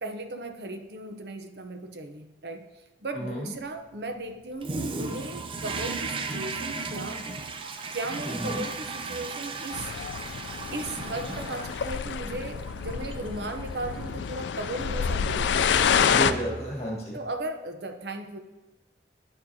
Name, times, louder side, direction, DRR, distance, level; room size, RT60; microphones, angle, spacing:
voice 1, 0.0-2.7 3.0-7.4 7.9-9.9 10.7-15.9 16.3-16.5 17.1-18.4, right 2 dB, 70° right, 6 dB, 0.7 m, -36 dB
voice 2, 3.1-3.5 8.2-8.6 15.5-17.2, right 1 dB, 35° left, -2 dB, 1.6 m, -33 dB
Toilet flush, 4.6-16.9, right 3 dB, 30° right, 0.5 m, -37 dB
sound 1, 9.7-16.3, left 7 dB, 90° left, 0.3 m, -28 dB
8.8 x 6.7 x 2.8 m, 1.1 s
head